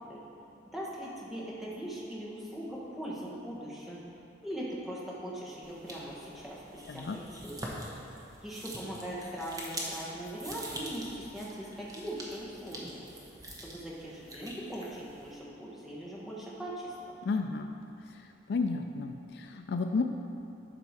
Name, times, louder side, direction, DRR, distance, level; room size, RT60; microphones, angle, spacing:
voice 1, 0.6-4.0 4.4-7.7 8.4-13.0 13.6-17.2, right 1 dB, ahead, -7 dB, 1.3 m, -40 dB
sound 1, 5.6-15.3, right 1 dB, 20° right, 0.9 m, -44 dB
voice 2, 6.9-7.2 17.2-17.7 18.1-18.2 18.5-20.0, left 4 dB, 55° left, 5 dB, 0.3 m, -32 dB
11.5 x 4.4 x 4.7 m, 2.8 s
head